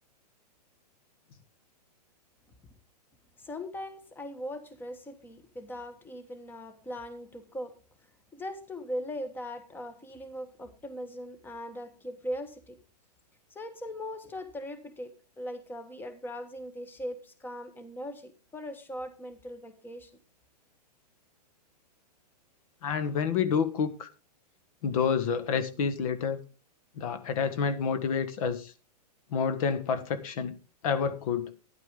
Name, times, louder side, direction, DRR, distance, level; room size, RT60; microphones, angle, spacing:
voice 1, 3.4-7.7 8.3-12.8 13.5-20.1, equal, 10° left, 1.4 m, -40 dB
voice 2, 22.8-24.1 24.8-26.4 27.0-28.7 29.3-30.6 30.8-31.5, left 6 dB, 55° left, 1.3 m, -28 dB
12.5 x 10.5 x 3.7 m
hypercardioid pair, 120°, 21 cm